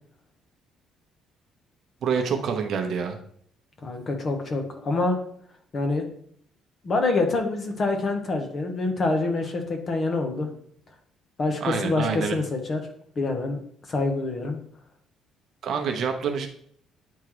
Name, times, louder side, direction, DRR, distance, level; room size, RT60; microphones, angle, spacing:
voice 1, 2.0-3.2 11.6-12.4 15.6-16.5, right 6 dB, 50° right, 4 dB, 0.8 m, -27 dB
voice 2, 3.8-5.2 5.7-6.1 6.8-10.5 11.4-12.8 13.2-13.6 13.9-14.6, left 3 dB, 30° left, 4 dB, 0.9 m, -26 dB
9.2 x 3.7 x 3.1 m, 0.62 s
cardioid pair, 160°, 0 cm